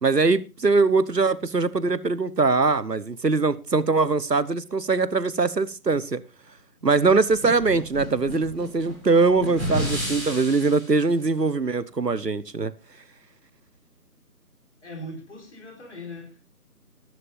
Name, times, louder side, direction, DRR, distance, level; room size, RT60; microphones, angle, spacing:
voice 1, 0.0-6.2 6.8-12.7, right 4 dB, 90° right, 1.2 m, -22 dB
sound 1, 7.0-10.9, equal, ahead, 2.2 m, -32 dB
voice 2, 14.8-16.6, left 1 dB, 45° left, 4.2 m, -40 dB
20.0 x 11.0 x 2.6 m
figure-of-eight pair, 160°, 47 cm